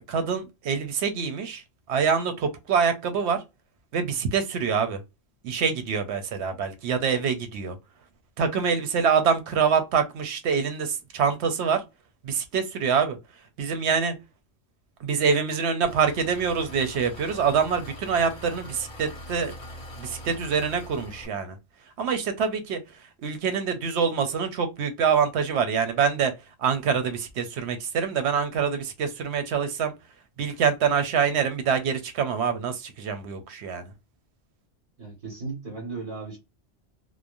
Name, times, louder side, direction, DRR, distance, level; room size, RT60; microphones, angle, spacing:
voice 1, 0.1-1.6 1.9-3.4 3.9-5.0 5.4-7.8 8.4-11.8 12.2-13.2 13.6-14.1 15.0-19.5 20.0-21.6 22.0-22.8 23.2-26.3 26.6-29.9 30.4-33.8, right 6 dB, 80° right, 0.9 m, -25 dB
Engine, 15.8-21.3, left 1 dB, 35° left, 0.8 m, -43 dB
voice 2, 35.0-36.4, right 3 dB, 50° right, 1.5 m, -36 dB
3.0 x 2.0 x 2.4 m
omnidirectional pair, 1.1 m